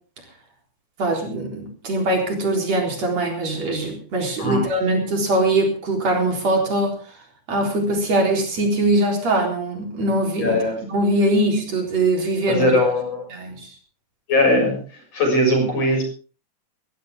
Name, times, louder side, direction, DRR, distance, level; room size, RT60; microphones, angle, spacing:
voice 1, 1.0-7.0 7.5-10.6 10.9-12.6 13.3-13.7, right 1 dB, 60° right, 2 dB, 5.0 m, -22 dB
voice 2, 10.4-10.8 12.5-13.2 14.3-14.8 15.1-16.0, left 1 dB, 55° left, 2 dB, 7.8 m, -19 dB
20.5 x 15.5 x 3.6 m, 0.39 s
omnidirectional pair, 3.4 m